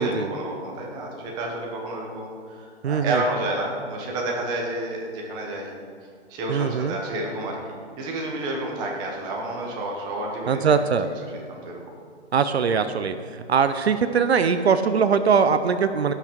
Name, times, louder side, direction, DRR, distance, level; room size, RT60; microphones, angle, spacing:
voice 1, 0.0-2.3 2.6-5.7 6.3-7.6 8.0-10.7 11.5-11.8, right 2 dB, 10° right, -1 dB, 1.1 m, -30 dB
voice 2, 2.8-3.2 6.5-7.0 10.5-11.1 12.3-16.1, right 6 dB, 65° right, 10 dB, 0.7 m, -21 dB
17.0 x 6.0 x 4.6 m, 2.2 s
hypercardioid pair, 160°, 34 cm